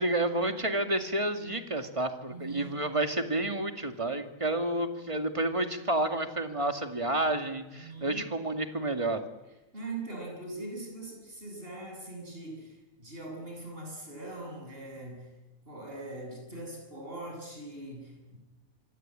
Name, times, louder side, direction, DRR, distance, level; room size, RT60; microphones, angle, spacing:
voice 1, 0.0-9.2, right 1 dB, 20° right, 6 dB, 2.2 m, -30 dB
voice 2, 2.3-2.8 7.7-8.3 9.7-15.3 15.7-18.4, right 2 dB, 40° right, 1 dB, 8.0 m, -42 dB
26.0 x 25.5 x 9.0 m, 1.0 s
omnidirectional pair, 1.5 m